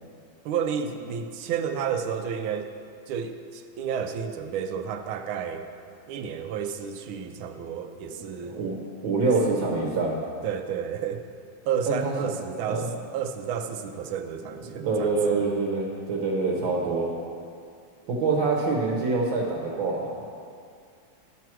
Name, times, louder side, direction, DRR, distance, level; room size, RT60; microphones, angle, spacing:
voice 1, 0.4-2.7 3.1-5.6 6.1-8.6 10.4-11.2 11.7-12.9 13.1-15.5, right 7 dB, 90° right, 7 dB, 1.5 m, -31 dB
voice 2, 8.1-8.8 9.0-10.2 11.9-12.1 12.7-12.9 14.6-17.1 18.1-20.1, right 3 dB, 70° right, -2 dB, 1.8 m, -26 dB
12.5 x 4.6 x 6.1 m, 2.3 s
omnidirectional pair, 2.2 m